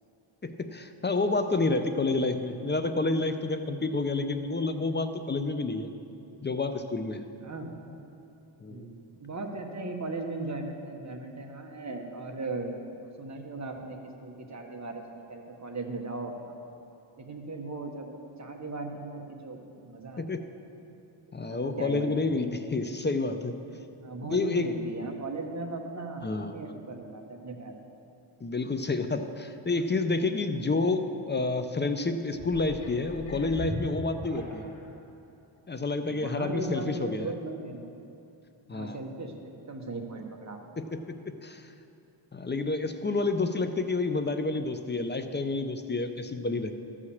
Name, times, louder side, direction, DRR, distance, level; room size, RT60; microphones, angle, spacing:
voice 1, 0.4-5.9 6.4-7.2 8.6-8.9 20.2-20.4 21.3-23.5 24.3-24.7 26.2-26.5 28.4-34.6 35.7-37.3 38.7-39.0 40.8-41.6 42.3-46.7, left 3 dB, 25° left, 8 dB, 0.5 m, -29 dB
voice 2, 7.4-7.8 8.7-16.6 17.2-18.1 18.4-20.4 21.4-22.3 24.0-27.8 36.0-37.9 38.7-40.8, right 2 dB, 35° right, 3 dB, 1.2 m, -38 dB
sound 1, 32.4-34.9 35.6-35.7, left 1 dB, 65° left, 1.9 m, -39 dB
14.0 x 4.9 x 7.0 m, 2.7 s
wide cardioid pair, 115°, 50 cm